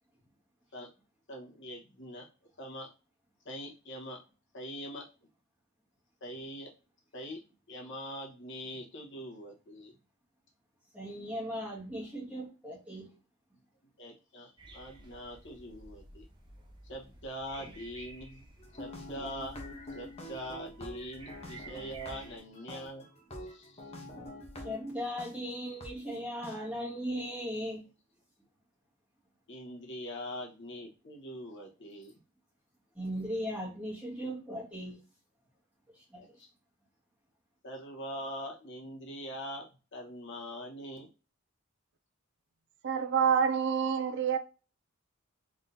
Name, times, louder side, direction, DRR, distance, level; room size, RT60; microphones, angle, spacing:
voice 1, 1.3-2.3 2.6-2.9 3.4-4.2 4.5-5.1 6.2-6.7 7.1-7.4 7.7-9.9 14.0-16.2 16.8-18.4 18.7-19.6 19.9-23.1 23.4-23.9 29.5-32.1 36.1-36.5 37.6-41.1, equal, 60° left, 1.3 m, -43 dB
voice 2, 10.9-13.1 24.6-27.8 33.0-35.0 36.0-36.2, equal, 5° right, 1.9 m, -37 dB
sound 1, 14.6-22.4, right 2 dB, 20° right, 0.9 m, -53 dB
sound 2, 18.6-25.3 25.8-25.9 26.4-26.5, left 1 dB, 30° left, 1.0 m, -46 dB
voice 3, 42.8-44.4, right 7 dB, 55° right, 0.5 m, -27 dB
3.9 x 3.7 x 2.8 m
head